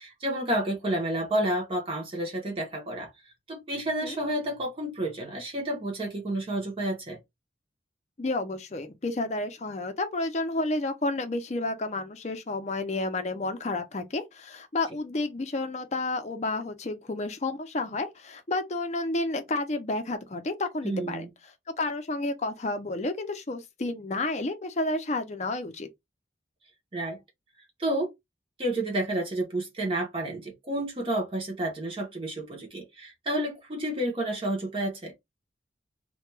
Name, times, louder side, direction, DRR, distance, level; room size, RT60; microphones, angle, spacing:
voice 1, 0.0-3.1 3.5-7.2 20.8-21.3 26.9-27.2 27.8-28.1 28.6-35.1, right 1 dB, 30° right, 0.6 m, -30 dB
voice 2, 8.2-21.3 21.7-25.9, left 2 dB, 35° left, 0.5 m, -31 dB
2.2 x 2.2 x 3.1 m
head